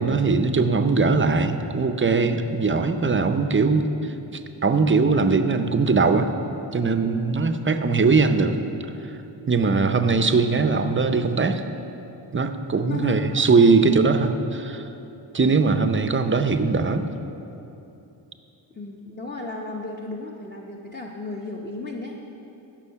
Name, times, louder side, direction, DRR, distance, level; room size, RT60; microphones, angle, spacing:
voice 1, 0.0-6.3 6.7-8.6 9.5-11.6 12.3-14.9 15.3-17.1, right 4 dB, 25° right, 8 dB, 0.6 m, -20 dB
voice 2, 12.9-13.4 15.3-15.6 18.7-22.2, left 2 dB, 20° left, -1 dB, 0.8 m, -34 dB
16.0 x 6.3 x 5.7 m, 2.9 s
wide cardioid pair, 120°, 48 cm